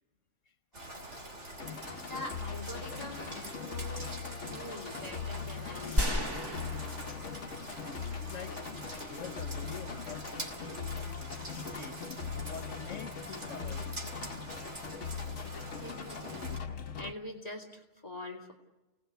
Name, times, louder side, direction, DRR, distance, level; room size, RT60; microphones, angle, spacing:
Rain, 0.7-16.6, right 1 dB, 65° right, 3.5 m, -45 dB
sound 1, 1.6-17.1, left 6 dB, 70° left, 1.3 m, -41 dB
voice 1, 2.1-6.7 15.8-16.5 17.0-18.5, left 1 dB, 30° left, 3 dB, 2.8 m, -44 dB
sound 2, 6.0-7.9 8.2-8.3, left 1 dB, 20° right, 1.7 m, -33 dB
voice 2, 7.8-8.5 9.1-12.0 12.5-13.9 15.7-15.8, left 6 dB, 90° left, 8 dB, 1.4 m, -47 dB
30.0 x 18.5 x 8.1 m, 1.1 s
omnidirectional pair, 1.3 m